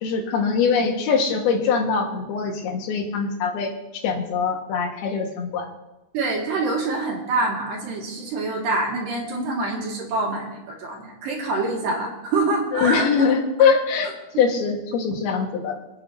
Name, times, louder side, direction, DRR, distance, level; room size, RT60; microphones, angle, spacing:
voice 1, 0.0-3.7 4.0-5.7 12.7-14.1 14.4-15.8, left 5 dB, 85° left, 2 dB, 3.5 m, -22 dB
voice 2, 6.1-13.3, right 2 dB, 70° right, -1 dB, 3.7 m, -26 dB
26.5 x 9.1 x 2.7 m, 1.0 s
omnidirectional pair, 4.3 m